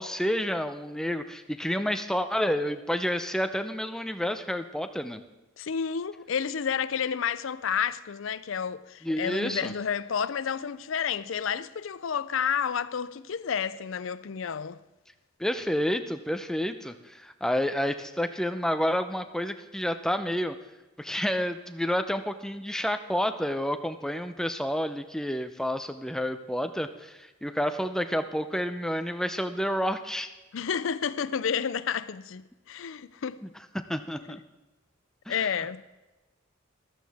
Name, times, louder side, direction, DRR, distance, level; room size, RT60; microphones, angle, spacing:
voice 1, 0.0-5.2 9.0-9.7 15.4-20.6 21.0-30.3 33.9-34.4 35.3-35.5, equal, 5° left, 0.6 m, -29 dB
voice 2, 5.6-14.8 30.5-33.4 34.3-34.4 35.3-35.8, left 7 dB, 70° left, 0.5 m, -30 dB
13.5 x 13.5 x 3.5 m
head